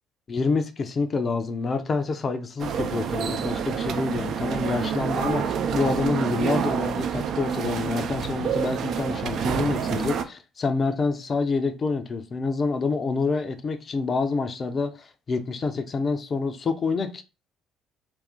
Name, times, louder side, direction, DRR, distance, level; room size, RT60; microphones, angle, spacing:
voice 1, 0.3-17.2, left 4 dB, 40° left, 0.4 m, -27 dB
sound 1, 2.6-10.2, right 7 dB, 55° right, 0.3 m, -28 dB
2.5 x 2.3 x 3.5 m
figure-of-eight pair, 50°, 0 cm